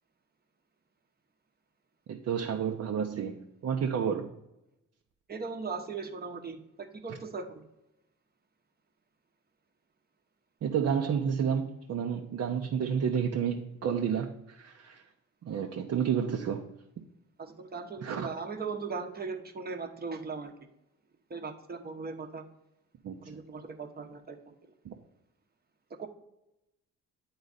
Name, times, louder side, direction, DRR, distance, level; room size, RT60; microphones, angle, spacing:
voice 1, 2.1-4.3 7.1-7.2 10.6-15.0 15.4-16.6 18.0-18.3 23.0-23.2 24.8-24.9, right 7 dB, 55° right, 2 dB, 0.8 m, -30 dB
voice 2, 5.3-7.6 17.4-20.5 21.3-22.4 23.2-24.6 26.0-26.1, right 4 dB, 30° right, 6 dB, 1.0 m, -38 dB
9.6 x 3.9 x 4.0 m, 0.90 s
cardioid pair, 90°, 30 cm